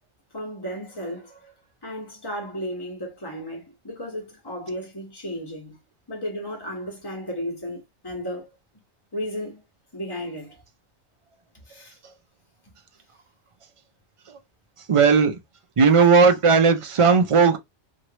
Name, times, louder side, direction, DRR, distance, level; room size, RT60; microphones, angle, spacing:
voice 1, 0.3-1.5 1.8-5.8 6.1-8.5 9.1-9.6 9.9-10.6 11.7-12.0, equal, 20° left, 1.3 m, -34 dB
voice 2, 14.9-15.4 15.8-17.6, right 5 dB, 50° right, 0.3 m, -16 dB
3.0 x 2.5 x 2.9 m
omnidirectional pair, 1.2 m